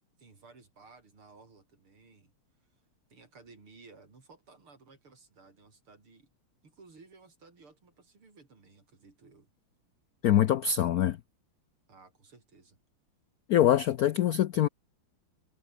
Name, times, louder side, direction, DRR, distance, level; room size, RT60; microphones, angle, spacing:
voice 1, 0.2-2.3 3.1-6.3 6.6-9.5 11.9-12.8, right 4 dB, 80° right, 5.7 m, -56 dB
voice 2, 10.2-11.2 13.5-14.7, left 11 dB, 80° left, 0.8 m, -24 dB
omnidirectional pair, 2.3 m